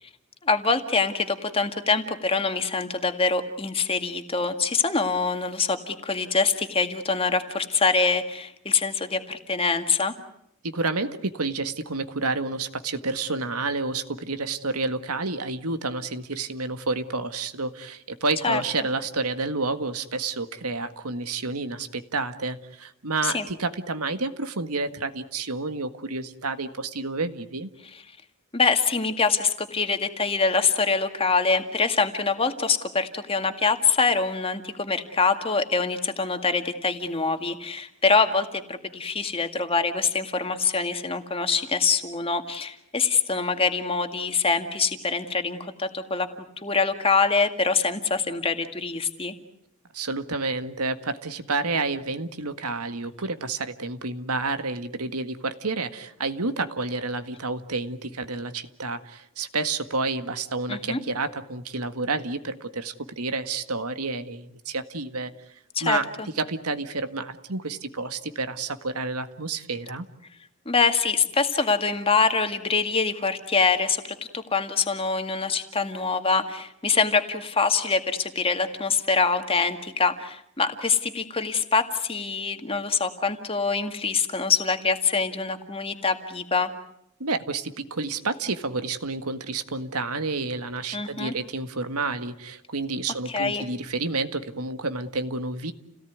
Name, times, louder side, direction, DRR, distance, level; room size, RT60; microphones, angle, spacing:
voice 1, 0.4-10.1 18.4-18.6 23.2-23.5 28.5-46.3 46.6-49.3 60.7-61.0 65.8-66.3 70.7-86.7 90.9-91.3 93.3-93.6, left 4 dB, 25° left, 7 dB, 2.0 m, -24 dB
voice 2, 10.6-27.7 49.9-66.0 66.4-70.1 87.2-95.7, right 3 dB, 85° right, 9 dB, 1.8 m, -30 dB
30.0 x 18.0 x 9.5 m, 0.75 s
head